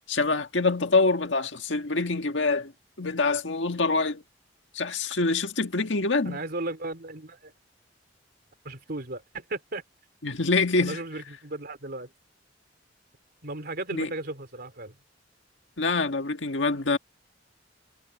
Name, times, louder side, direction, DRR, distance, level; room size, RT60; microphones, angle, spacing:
voice 1, 0.1-2.7 3.0-4.2 4.7-6.4 10.2-11.0 13.9-14.1 15.8-17.0, left 3 dB, 75° left, 1.8 m, -25 dB
voice 2, 6.2-7.5 8.7-9.8 10.8-12.1 13.4-15.0, right 2 dB, 55° right, 3.4 m, -35 dB
head